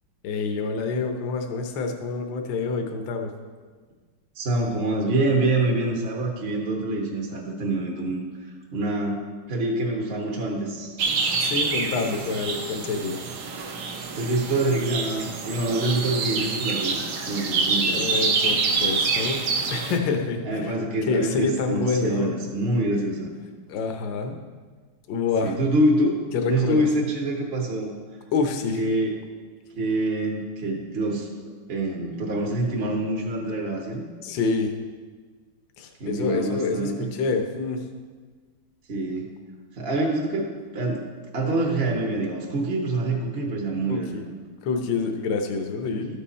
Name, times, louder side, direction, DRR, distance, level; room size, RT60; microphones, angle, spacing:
voice 1, 0.2-3.3 11.4-13.2 17.9-20.7 21.1-22.3 23.7-24.4 25.1-25.5 26.3-26.9 28.3-28.8 34.2-34.7 35.8-37.8 43.9-44.2 44.6-46.2, left 4 dB, 65° left, 4 dB, 1.4 m, -27 dB
voice 2, 4.3-8.2 8.7-9.2 9.5-10.9 14.1-18.1 20.4-23.3 25.4-26.2 26.5-27.9 28.7-29.1 29.7-31.3 31.7-34.0 36.0-37.1 38.9-39.4 39.7-41.1 41.3-44.2 45.9-46.2, right 2 dB, 40° right, -1 dB, 0.9 m, -26 dB
sound 1, 11.0-20.0, right 4 dB, 60° right, 1.2 m, -26 dB
12.5 x 5.5 x 4.2 m, 1.5 s
omnidirectional pair, 2.3 m